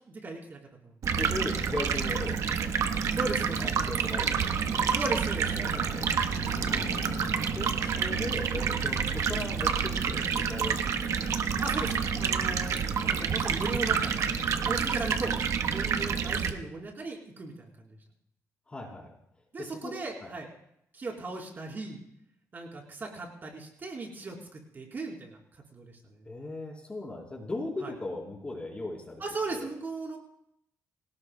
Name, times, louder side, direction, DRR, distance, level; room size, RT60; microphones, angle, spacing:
voice 1, 0.1-1.0 3.1-4.1 4.9-5.9 6.7-6.9 8.9-9.1 11.6-12.8 13.0-14.2 14.7-15.3 15.7-18.0 19.5-20.5 20.9-22.0 22.5-25.4 25.7-26.2 27.8-27.9 29.2-30.2, right 3 dB, 35° right, -1 dB, 3.9 m, -37 dB
Stream, 1.0-16.5, right 6 dB, 65° right, 1.1 m, -28 dB
voice 2, 1.2-2.7 3.6-4.9 5.5-6.2 7.6-11.2 18.7-19.1 19.6-20.3 26.3-29.2 29.5-29.7, left 2 dB, 20° left, -1 dB, 3.6 m, -38 dB
sound 1, 5.9-8.4, left 7 dB, 65° left, 0.8 m, -43 dB
25.0 x 18.0 x 2.2 m, 0.73 s
cardioid pair, 125°, 6 cm